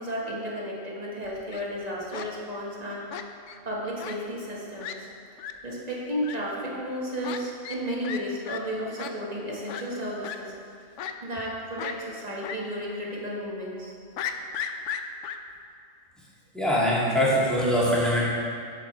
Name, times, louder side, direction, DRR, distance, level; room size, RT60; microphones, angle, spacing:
voice 1, 0.0-3.1 3.6-4.9 5.6-10.5 11.2-13.9, equal, 30° right, -4 dB, 1.5 m, -33 dB
Fowl, 1.2-1.6 2.1-2.3 3.1-3.6 4.0-4.2 4.5-4.6 4.8-4.9 5.4-5.5 6.2-6.3 7.2-7.4 7.6-7.8 8.0-8.2 8.5-8.6 9.0-9.1 9.7-9.8 10.2-10.4 11.0-11.5 11.8-11.9 12.4-12.6 12.9-13.0 14.2-15.4, left 9 dB, 70° left, 0.8 m, -35 dB
voice 2, 16.5-18.2, equal, ahead, -8 dB, 2.0 m, -22 dB
9.2 x 7.0 x 4.5 m, 2.3 s
omnidirectional pair, 1.4 m